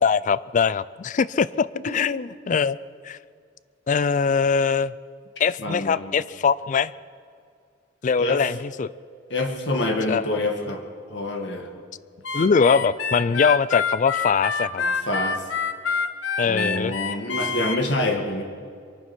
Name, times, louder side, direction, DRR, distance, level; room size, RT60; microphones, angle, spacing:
voice 1, 0.0-2.8 3.0-3.2 3.9-4.9 5.4-6.9 8.0-8.9 10.1-10.2 12.3-14.8 16.4-17.0, left 5 dB, 40° left, 18 dB, 0.3 m, -22 dB
voice 2, 5.6-6.1 8.2-8.5 9.3-10.8 11.1-11.7 14.8-15.4 16.4-18.4, left 2 dB, 65° left, 3 dB, 1.9 m, -27 dB
Harmonica, 12.2-17.8, left 5 dB, 85° left, 0.9 m, -27 dB
23.5 x 9.7 x 6.1 m, 2.3 s
head